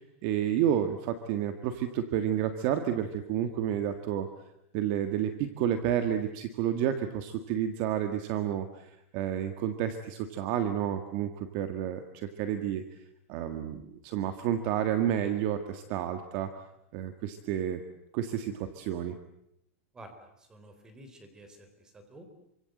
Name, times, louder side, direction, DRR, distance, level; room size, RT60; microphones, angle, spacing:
voice 1, 0.0-4.3 4.7-12.8 13.3-16.5 16.9-17.8 18.1-19.2, right 10 dB, 35° right, 8 dB, 1.6 m, -30 dB
voice 2, 20.4-21.7 21.9-22.2, right 1 dB, 10° right, 7 dB, 3.5 m, -50 dB
27.5 x 25.0 x 7.8 m, 0.79 s
supercardioid pair, 175°, 7 cm